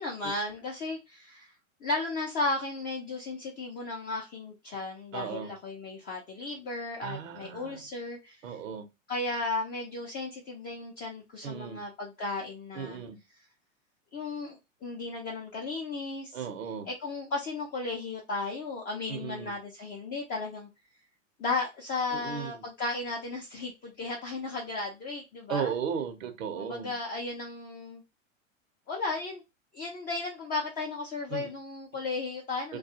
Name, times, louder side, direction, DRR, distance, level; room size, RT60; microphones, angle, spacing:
voice 1, 0.0-1.5 1.8-8.4 9.1-13.0 14.1-16.4 16.9-20.7 21.4-25.7 26.6-28.0 28.9-29.4 29.7-32.8, left 3 dB, 25° left, 0.5 m, -35 dB
voice 2, 5.1-5.5 7.0-7.9 8.4-8.9 11.4-11.8 12.7-13.2 16.3-16.9 19.1-19.6 22.1-22.6 25.5-27.0 31.3-31.5 32.7-32.8, right 7 dB, 75° right, 0.8 m, -36 dB
2.3 x 2.3 x 2.7 m
hypercardioid pair, 110°, 40 cm